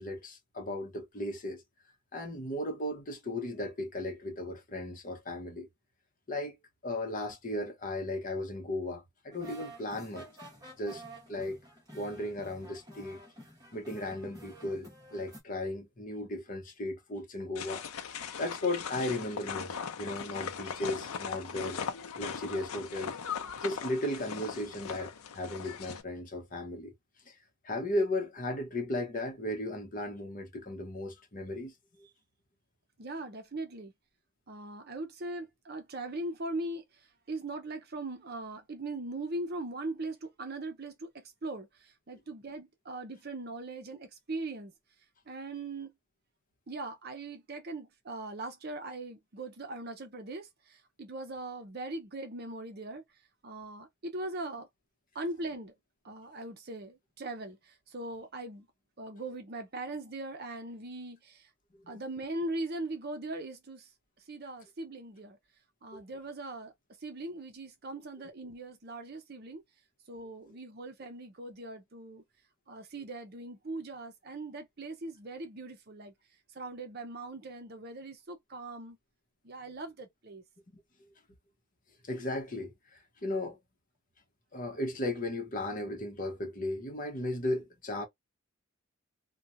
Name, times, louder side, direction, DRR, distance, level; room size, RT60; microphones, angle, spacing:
voice 1, 0.0-1.6 2.1-5.7 6.3-6.6 6.8-10.3 10.8-11.0 11.3-11.6 11.9-13.2 13.7-17.8 18.4-21.8 22.2-23.2 23.6-26.9 27.3-27.4 27.6-32.1 61.8-62.0 65.9-66.0 80.7-80.8 82.1-82.7 83.2-83.6 84.5-88.1, left 1 dB, 40° left, 0.9 m, -36 dB
sound 1, 9.3-15.4, right 1 dB, 15° right, 1.2 m, -50 dB
sound 2, 17.6-26.0, left 6 dB, 90° left, 0.6 m, -39 dB
voice 2, 33.0-33.9 34.5-36.8 37.3-44.7 45.3-45.9 46.7-53.0 53.4-54.7 55.1-55.7 56.0-58.7 59.0-61.5 61.9-63.9 64.3-65.4 65.8-66.7 67.0-69.6 70.1-72.2 72.7-76.1 76.5-79.0 79.4-80.4, right 2 dB, 45° right, 0.7 m, -40 dB
3.0 x 2.2 x 2.5 m
head